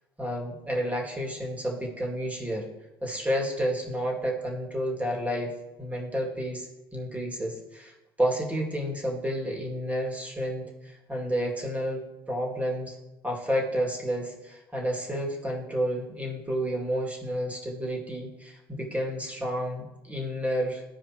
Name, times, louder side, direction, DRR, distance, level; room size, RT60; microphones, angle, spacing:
voice 1, 0.2-2.7 3.0-13.0 13.2-20.8, equal, 10° right, -2 dB, 2.3 m, -30 dB
13.5 x 4.8 x 3.0 m, 0.99 s
hypercardioid pair, 65°, 12 cm